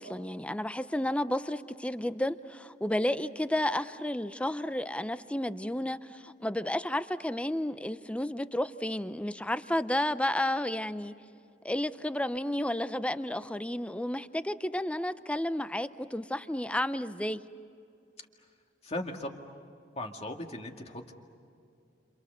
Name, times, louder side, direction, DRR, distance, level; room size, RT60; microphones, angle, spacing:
voice 1, 0.0-11.1 11.6-17.4, left 1 dB, 5° left, 13 dB, 0.7 m, -32 dB
voice 2, 18.8-19.5 20.0-21.1, left 1 dB, 35° left, 3 dB, 2.1 m, -38 dB
29.5 x 27.5 x 6.8 m, 2.5 s
head